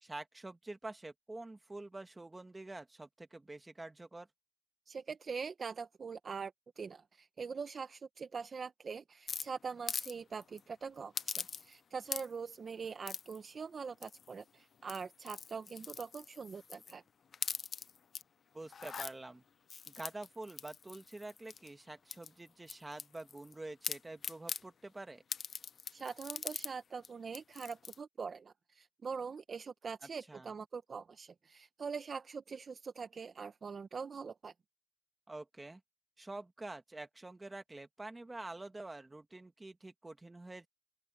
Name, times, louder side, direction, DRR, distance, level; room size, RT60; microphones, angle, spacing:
voice 1, 0.0-4.3 18.5-19.4 19.9-25.2 30.3-30.5 35.3-35.8 36.2-40.7, right 2 dB, 15° right, 1.9 m, -47 dB
voice 2, 4.9-17.0 25.9-34.5, right 5 dB, 40° right, 0.8 m, -43 dB
sound 1, 9.3-10.1 10.4-10.6 11.2-11.8 12.1-12.5 13.1-13.4 14.0-14.4 14.8-16.9 17.3-18.2 18.7-19.1 19.7-21.7 22.1-23.5 23.8-24.6 25.3-26.7 27.0-27.1 27.3-28.0, left 6 dB, 45° left, 0.6 m, -42 dB
open air
cardioid pair, 115°, 0 cm